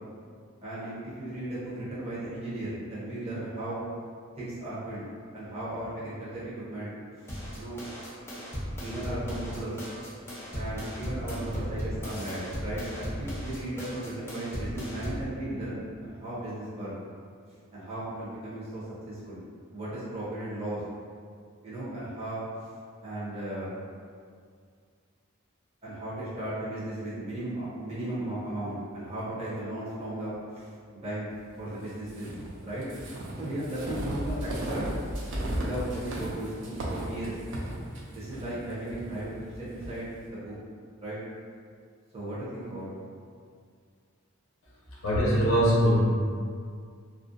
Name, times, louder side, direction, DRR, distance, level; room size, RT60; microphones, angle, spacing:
voice 1, 0.6-3.8 4.4-6.9 7.2-7.8 8.8-9.8 10.5-16.9 17.7-19.4 19.7-20.8 21.6-22.4 23.0-23.7 25.8-31.3 31.6-32.3 32.6-32.8 33.4-34.9 35.5-37.4 38.1-40.5 41.0-41.2 42.1-42.9, right 1 dB, 30° right, -11 dB, 0.7 m, -36 dB
sound 1, 7.3-15.3, equal, 10° left, 0.5 m, -36 dB
sound 2, 32.1-40.0, right 1 dB, 60° right, 0.4 m, -35 dB
voice 2, 45.0-46.0, equal, 75° left, -7 dB, 0.6 m, -22 dB
2.5 x 2.0 x 2.5 m, 2.1 s
head